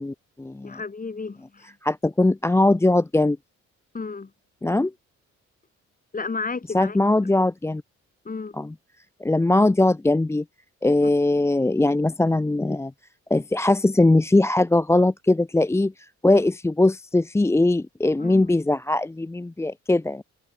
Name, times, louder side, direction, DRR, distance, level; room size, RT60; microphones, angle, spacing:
voice 1, 0.0-0.8 1.8-3.4 4.6-4.9 6.7-7.8 8.6-8.7 9.2-10.4 10.8-12.9 13.3-20.2, left 2 dB, 10° left, 0.6 m, -21 dB
voice 2, 0.6-1.7 3.9-4.3 6.1-7.0 8.2-8.6 11.0-11.1 18.2-18.5, left 4 dB, 30° left, 5.7 m, -32 dB
cardioid pair, 90°, 30 cm